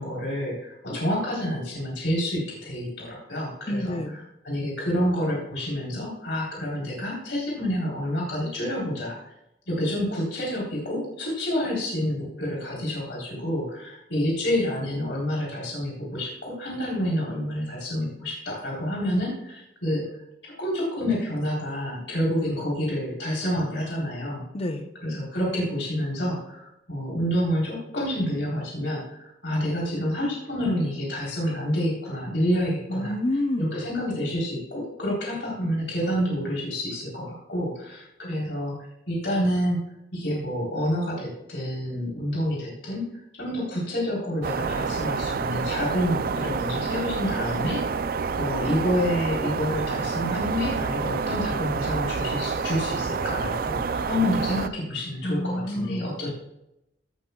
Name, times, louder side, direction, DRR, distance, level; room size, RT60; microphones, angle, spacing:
voice 1, 0.0-9.3 9.7-24.4 25.0-33.2 33.6-38.8 39.1-39.8 40.1-43.1 43.4-48.1 48.4-56.3, equal, 85° left, -4 dB, 3.8 m, -28 dB
voice 2, 3.7-4.1 24.5-24.9 32.9-33.8 55.2-56.1, left 1 dB, 35° left, 8 dB, 0.8 m, -28 dB
sound 1, 44.4-54.7, right 5 dB, 55° right, 0.4 m, -28 dB
16.5 x 8.9 x 2.4 m, 0.84 s
head